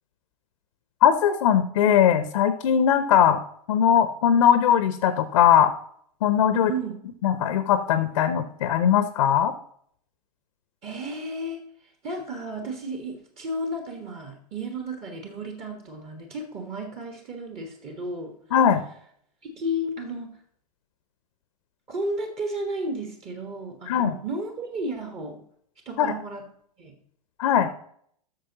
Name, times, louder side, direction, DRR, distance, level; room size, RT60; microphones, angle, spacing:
voice 1, 1.0-3.4 3.7-5.7 6.2-6.7 7.2-9.5 18.5-18.8 23.9-24.2 26.0-26.1 27.4-27.7, left 9 dB, 60° left, 11 dB, 0.7 m, -20 dB
voice 2, 6.5-6.9 10.8-11.6 12.0-18.4 19.4-20.4 21.9-25.4 25.8-26.4 26.8-26.9, right 1 dB, 30° right, 4 dB, 1.4 m, -33 dB
13.0 x 6.5 x 2.9 m, 0.64 s
figure-of-eight pair, 95°, 20 cm